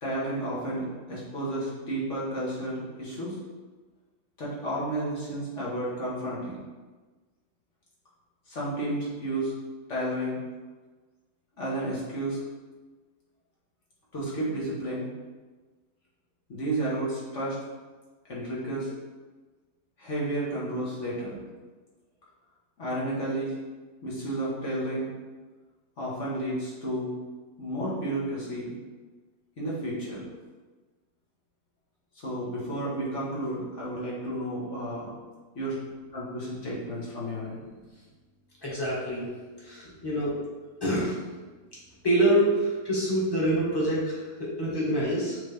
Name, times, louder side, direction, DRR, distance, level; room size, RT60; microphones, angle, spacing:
voice 1, 0.0-3.4 4.4-6.6 8.5-9.5 9.9-10.4 11.6-12.4 14.1-15.1 16.5-17.6 18.3-18.9 20.0-21.4 22.8-23.5 24.0-25.1 26.0-27.1 27.6-28.7 29.6-30.2 32.2-35.1 35.6-35.8 36.1-37.6 39.8-39.9, right 1 dB, 45° left, -6 dB, 2.1 m, -32 dB
voice 2, 38.6-39.3 39.6-40.3 40.8-41.1 42.0-45.4, right 1 dB, 15° left, -7 dB, 1.8 m, -26 dB
7.4 x 3.8 x 3.6 m, 1.3 s
omnidirectional pair, 1.7 m